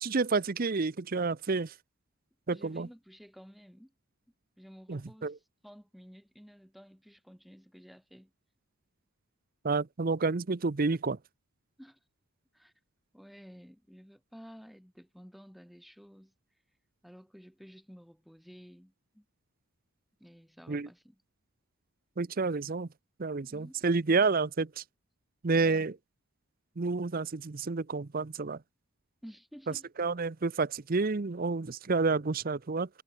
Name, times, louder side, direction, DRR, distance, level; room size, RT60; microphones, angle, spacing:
voice 1, 0.0-1.7 2.5-2.9 4.9-5.3 9.6-11.2 20.7-20.9 22.2-22.9 23.2-24.8 25.4-25.9 26.8-28.6 30.0-32.9, right 4 dB, 40° right, 0.6 m, -29 dB
voice 2, 2.5-3.9 4.6-8.3 11.8-12.0 12.5-12.7 13.1-16.3 17.0-19.3 20.2-21.2 23.5-23.8 25.5-25.9 29.2-29.9, equal, ahead, 6.9 m, -53 dB
head